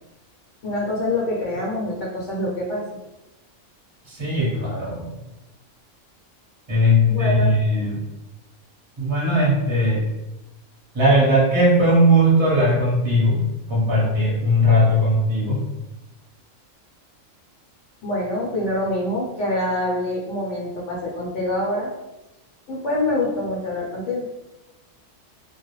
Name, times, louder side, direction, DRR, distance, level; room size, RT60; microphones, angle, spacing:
voice 1, 0.6-2.8 7.1-7.5 18.0-21.9 22.7-24.2, left 1 dB, 70° left, -4 dB, 0.9 m, -25 dB
voice 2, 4.1-5.0 6.7-8.0 9.0-10.0 10.9-13.4 13.7-15.6, equal, 25° right, -6 dB, 0.8 m, -18 dB
2.3 x 2.0 x 3.0 m, 0.97 s
omnidirectional pair, 1.3 m